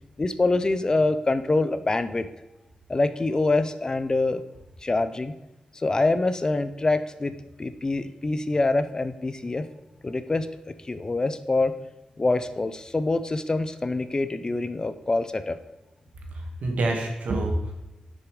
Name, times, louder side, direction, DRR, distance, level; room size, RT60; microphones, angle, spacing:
voice 1, 0.2-2.3 2.9-4.4 4.8-5.3 5.7-7.3 7.6-9.7 10.0-10.5 10.8-11.7 12.2-15.6, left 2 dB, 30° left, 12 dB, 0.6 m, -25 dB
voice 2, 16.3-17.7, right 2 dB, 85° right, 1 dB, 2.1 m, -27 dB
9.6 x 6.2 x 5.0 m, 1.0 s
wide cardioid pair, 90°, 2 cm